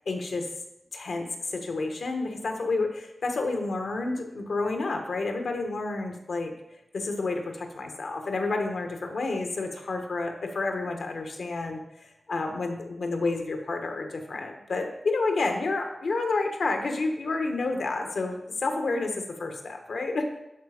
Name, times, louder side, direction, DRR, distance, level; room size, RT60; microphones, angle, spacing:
voice 1, 0.1-0.5 0.9-6.5 6.9-20.3, left 3 dB, 85° left, 4 dB, 1.2 m, -30 dB
11.5 x 4.3 x 5.0 m, 0.89 s
wide cardioid pair, 80°, 0 cm